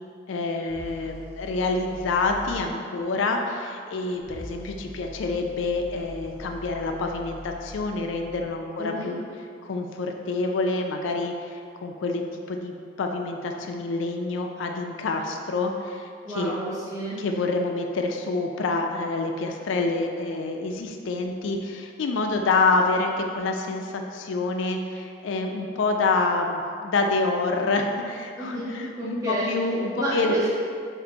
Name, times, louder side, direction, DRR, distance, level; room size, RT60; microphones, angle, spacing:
voice 1, 0.3-9.2 9.6-16.6 17.2-30.4, left 3 dB, 85° left, 3 dB, 0.4 m, -27 dB
sound 1, 0.7-2.7 4.2-8.5, equal, 55° right, 0.8 m, -42 dB
voice 2, 8.8-9.1 16.2-17.2 28.4-29.5 30.0-30.5, right 1 dB, 15° right, -9 dB, 1.0 m, -30 dB
3.8 x 2.5 x 4.5 m, 2.2 s
head